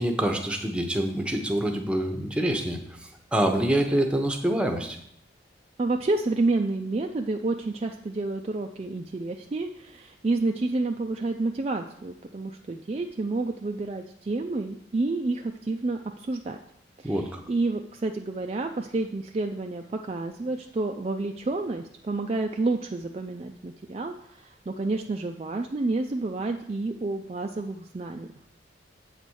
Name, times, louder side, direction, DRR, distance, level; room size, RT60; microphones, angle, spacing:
voice 1, 0.0-2.8 3.3-5.0 17.0-17.4, right 1 dB, 5° right, 4 dB, 0.8 m, -26 dB
voice 2, 5.8-16.6 17.0-28.3, right 2 dB, 35° right, 4 dB, 0.4 m, -29 dB
7.9 x 4.2 x 6.2 m, 0.74 s
head